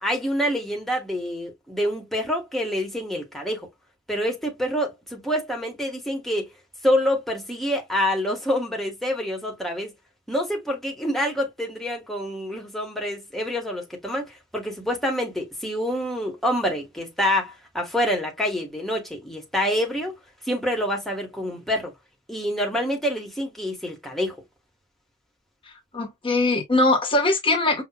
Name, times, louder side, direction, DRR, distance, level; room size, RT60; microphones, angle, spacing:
voice 1, 0.0-3.7 4.1-6.5 6.8-9.9 10.3-20.1 20.5-21.9 22.3-24.4, equal, ahead, 1.4 m, -27 dB
voice 2, 25.9-27.8, left 2 dB, 30° left, 1.3 m, -21 dB
5.8 x 2.6 x 2.3 m
head